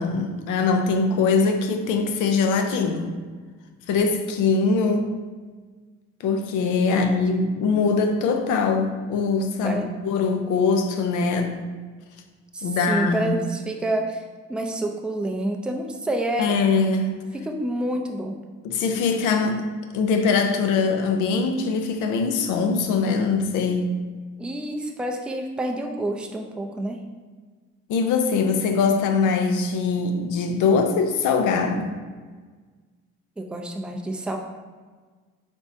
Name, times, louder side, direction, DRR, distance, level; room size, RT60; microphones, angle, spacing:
voice 1, 0.0-3.1 3.9-5.1 6.2-11.6 12.6-13.4 16.4-17.1 18.6-19.6 19.9-23.9 27.9-32.0, left 4 dB, 90° left, 5 dB, 0.5 m, -22 dB
voice 2, 6.9-7.4 9.6-9.9 12.5-14.2 14.5-16.6 17.4-18.3 24.4-27.0 33.4-34.4, right 1 dB, 5° right, 2 dB, 0.4 m, -28 dB
4.0 x 3.5 x 2.6 m, 1.4 s
cardioid pair, 90°, 30 cm